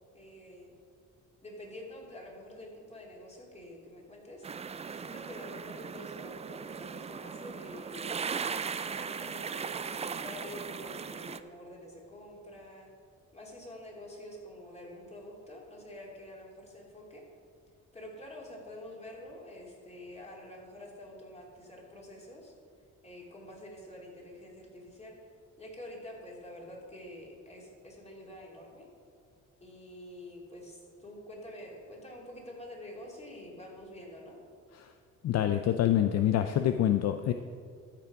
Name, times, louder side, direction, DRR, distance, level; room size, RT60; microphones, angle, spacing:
voice 1, 0.1-0.8 1.4-8.2 8.9-12.9 13.3-17.2 17.9-22.5 23.0-25.2 25.6-28.9 29.6-34.4, left 1 dB, 20° left, -2 dB, 2.7 m, -47 dB
sound 1, 4.4-11.4, right 6 dB, 20° right, 0.3 m, -38 dB
voice 2, 35.2-37.3, left 11 dB, 60° left, 8 dB, 0.5 m, -26 dB
13.5 x 5.8 x 4.8 m, 2.2 s
cardioid pair, 90°, 30 cm